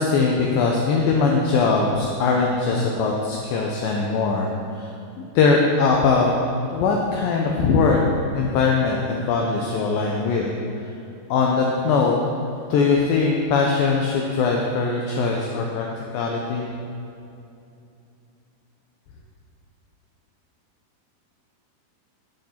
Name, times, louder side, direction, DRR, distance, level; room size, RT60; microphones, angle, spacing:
voice 1, 0.0-4.9 5.2-6.3 6.7-8.0 8.4-10.5 11.3-12.2 12.7-15.9 16.1-16.7, left 4 dB, 80° left, 0 dB, 2.1 m, -21 dB
10.0 x 6.5 x 4.2 m, 2.7 s
omnidirectional pair, 4.7 m